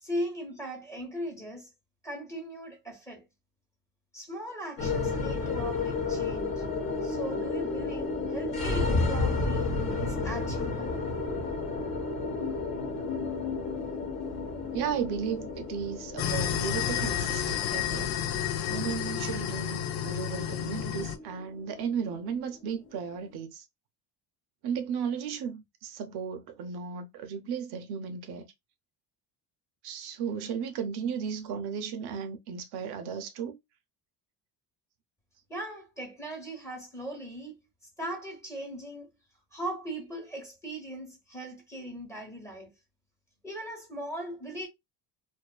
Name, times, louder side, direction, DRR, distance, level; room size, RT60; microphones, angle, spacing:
voice 1, 0.0-1.7 2.0-3.2 4.1-6.7 7.0-11.0 35.5-37.6 38.0-39.1 39.5-42.7 43.4-44.7, right 1 dB, 5° left, 1.0 m, -39 dB
sound 1, 4.8-23.2, left 3 dB, 40° left, 0.8 m, -32 dB
voice 2, 14.7-18.1 18.7-23.6 24.6-28.5 29.8-33.6, right 7 dB, 65° right, 0.6 m, -35 dB
sound 2, 16.2-21.2, left 9 dB, 70° left, 0.5 m, -31 dB
2.5 x 2.3 x 2.3 m
cardioid pair, 145°, 41 cm